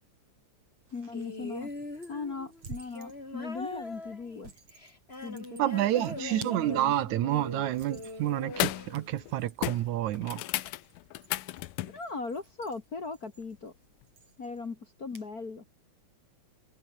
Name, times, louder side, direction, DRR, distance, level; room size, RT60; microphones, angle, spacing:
sound 1, 0.8-15.3, right 4 dB, 50° right, 5.3 m, -54 dB
voice 1, 0.9-1.7 2.1-4.5 5.2-6.9 7.2-7.4 11.8-13.7 14.4-15.6, left 4 dB, 35° left, 1.8 m, -39 dB
'You're mine', 1.1-9.5 10.5-10.6, left 2 dB, 20° left, 4.3 m, -42 dB
voice 2, 5.6-10.4, right 14 dB, 75° right, 2.2 m, -29 dB
sound 2, 7.7-8.1 8.5-8.9 9.2-9.3 9.6-12.0 14.0-14.1, left 17 dB, 85° left, 2.4 m, -34 dB
omnidirectional pair, 3.6 m